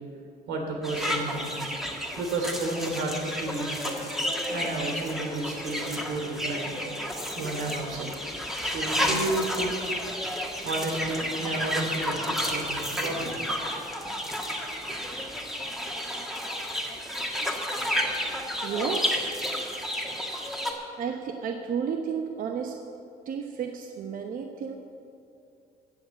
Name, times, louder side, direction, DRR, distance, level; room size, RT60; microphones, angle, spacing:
voice 1, 0.5-1.5 2.2-4.2 4.5-6.7 7.3-8.1 8.6-9.8 10.6-13.4 20.5-20.6, right 2 dB, 85° right, 1 dB, 3.2 m, -32 dB
sound 1, 0.8-20.7, equal, ahead, 1.9 m, -31 dB
voice 2, 18.6-19.4 21.0-22.8 23.2-24.8, right 7 dB, 55° right, 4 dB, 1.0 m, -32 dB
15.0 x 7.5 x 8.3 m, 2.6 s
cardioid pair, 110°, 17 cm